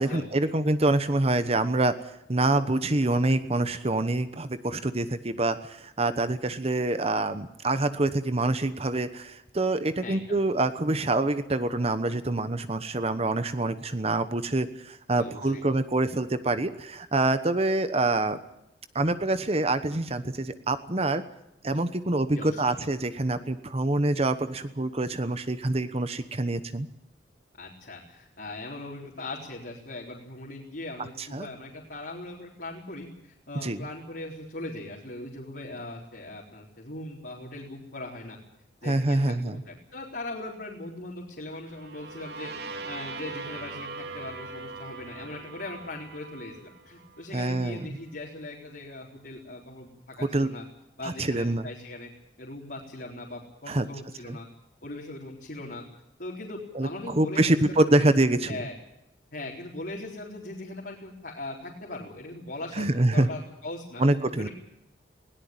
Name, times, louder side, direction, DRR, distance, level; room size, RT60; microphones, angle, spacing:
voice 1, 0.0-1.9 2.3-18.4 18.9-21.2 21.6-26.9 31.2-31.5 33.6-33.8 38.8-39.6 47.3-47.8 50.3-50.5 51.0-51.7 53.7-53.9 54.3-54.4 56.7-58.6 62.8-63.3 64.0-64.5, right 2 dB, 35° right, 11 dB, 1.1 m, -26 dB
voice 2, 10.0-10.4 15.2-15.6 22.3-22.7 27.6-38.4 38.8-50.6 51.0-52.1 52.4-54.5 54.8-55.8 56.2-57.9 58.5-58.7 59.3-64.0 64.4-64.5, left 2 dB, 60° left, -3 dB, 3.9 m, -40 dB
sound 1, 41.6-47.5, right 3 dB, 65° right, 2.7 m, -41 dB
20.5 x 18.0 x 9.0 m, 0.85 s
head